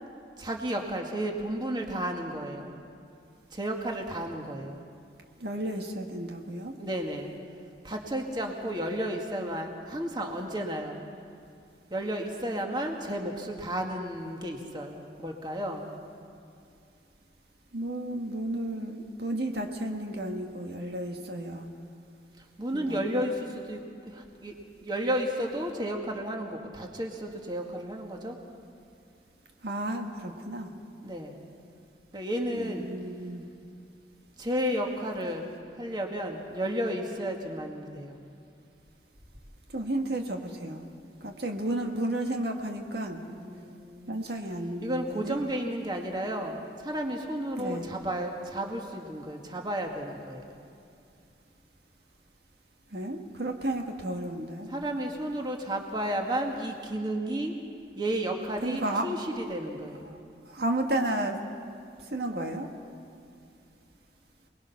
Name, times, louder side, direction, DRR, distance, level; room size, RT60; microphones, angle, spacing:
voice 1, 0.4-2.8 3.5-4.8 6.8-7.3 7.8-11.0 11.9-15.9 22.6-24.6 24.8-28.4 31.0-31.4 32.1-32.9 34.4-35.5 35.8-38.2 43.2-44.2 44.8-50.4 54.7-57.6 58.0-60.2, right 1 dB, 25° right, 2 dB, 1.9 m, -32 dB
voice 2, 5.4-6.7 17.7-21.7 22.7-23.2 29.6-30.7 32.5-33.4 39.7-40.9 41.2-43.2 44.1-45.4 47.6-47.8 52.9-54.7 58.6-59.1 60.1-60.2 60.5-61.4 62.1-62.7, right 1 dB, 70° right, 3 dB, 1.6 m, -32 dB
28.0 x 20.5 x 5.8 m, 2.5 s
head